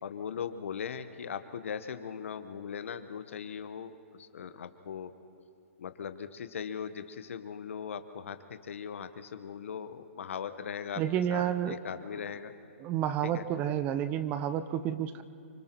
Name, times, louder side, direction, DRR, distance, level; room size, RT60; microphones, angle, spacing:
voice 1, 0.0-3.9 4.2-5.1 5.8-11.0 11.3-12.5 13.2-13.4, left 7 dB, 70° left, 10 dB, 1.1 m, -39 dB
voice 2, 11.0-11.8 12.8-15.2, right 10 dB, 20° right, 12 dB, 0.5 m, -30 dB
25.5 x 24.5 x 4.5 m, 2.7 s
hypercardioid pair, 150°, 7 cm